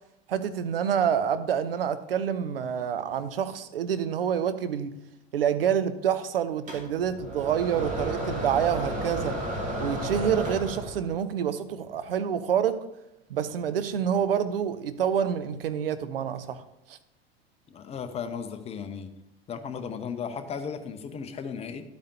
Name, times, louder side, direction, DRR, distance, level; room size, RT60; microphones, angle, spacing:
voice 1, 0.3-5.0 5.3-9.4 9.8-12.8 13.3-16.6 16.9-17.0, right 8 dB, 65° right, 11 dB, 0.7 m, -27 dB
sound 1, 6.7-11.2, right 1 dB, 25° right, 2.3 m, -32 dB
voice 2, 17.7-19.1 19.5-21.8, left 6 dB, 20° left, 9 dB, 0.8 m, -35 dB
11.5 x 8.4 x 2.8 m, 0.85 s
figure-of-eight pair, 85°, 31 cm